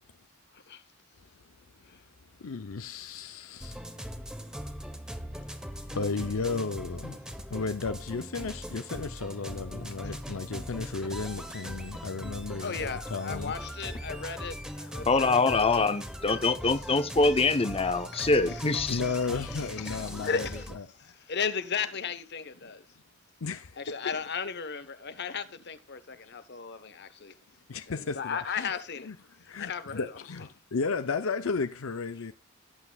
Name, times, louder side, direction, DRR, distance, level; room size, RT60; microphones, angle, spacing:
voice 1, 2.4-4.1 5.9-7.2 7.5-13.5 18.9-20.5 20.7-21.1 23.4-24.0 27.7-28.7 29.1-29.2 29.5-32.3, left 4 dB, 75° left, 0.7 m, -34 dB
sound 1, 3.6-20.8, equal, 5° right, 1.1 m, -40 dB
voice 2, 12.6-15.9 16.7-16.8 18.1-22.9 23.8-27.4 27.9-29.1 29.4-30.1, left 6 dB, 55° left, 1.1 m, -36 dB
voice 3, 15.1-19.0, left 3 dB, 30° left, 0.9 m, -24 dB
18.0 x 8.2 x 2.4 m
head